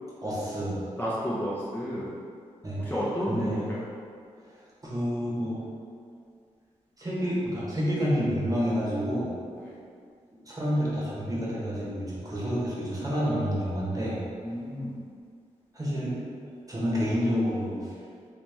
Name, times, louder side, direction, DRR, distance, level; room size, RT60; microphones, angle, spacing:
voice 1, 0.2-0.8 2.6-2.8 3.3-3.7 4.5-4.6 4.8-5.6 7.0-9.3 10.4-14.2 15.7-16.2 16.7-17.9, equal, 25° right, -7 dB, 1.2 m, -29 dB
voice 2, 1.0-2.1 2.8-3.8 9.6-9.8 14.4-15.0, equal, 15° left, -8 dB, 0.9 m, -31 dB
2.9 x 2.9 x 3.4 m, 2.2 s
supercardioid pair, 50°, 13 cm